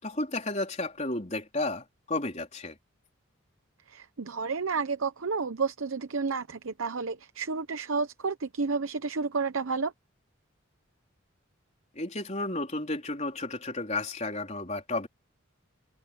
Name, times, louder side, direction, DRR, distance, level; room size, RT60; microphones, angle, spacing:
voice 1, 0.0-2.8 12.0-15.1, left 2 dB, 35° left, 4.1 m, -32 dB
voice 2, 3.9-9.9, right 4 dB, 75° right, 0.8 m, -31 dB
head